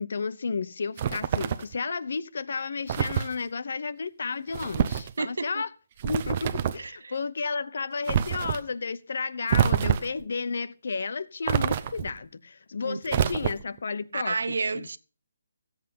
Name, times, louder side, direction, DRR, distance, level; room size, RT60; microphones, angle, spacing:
voice 1, 0.0-5.7 6.0-14.9, left 4 dB, 60° left, 0.9 m, -32 dB
sound 1, 1.0-1.7 2.9-3.3 4.5-5.1 6.0-6.9 8.1-8.6 9.5-10.2 11.5-12.2 13.1-13.8, right 9 dB, 30° right, 0.6 m, -26 dB
voice 2, 5.2-5.5 6.8-7.1 12.8-13.4 14.1-15.0, right 4 dB, 80° right, 1.0 m, -31 dB
15.0 x 8.1 x 5.4 m
hypercardioid pair, 170°, 0 cm